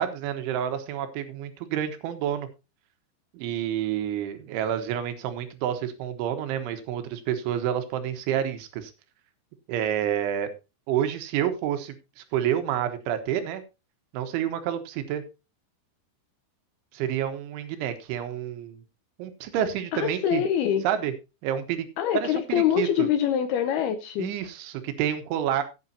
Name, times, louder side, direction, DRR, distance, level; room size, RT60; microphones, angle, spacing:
voice 1, 0.0-2.5 3.3-8.9 9.7-10.5 10.9-13.6 14.1-15.2 16.9-18.8 19.2-20.4 20.8-21.1 21.4-21.9 22.1-23.1 24.2-25.6, right 10 dB, 85° right, 9 dB, 3.7 m, -29 dB
voice 2, 19.9-20.8 22.0-24.4, left 10 dB, 75° left, 9 dB, 2.3 m, -25 dB
15.0 x 8.8 x 2.8 m, 0.27 s
omnidirectional pair, 5.3 m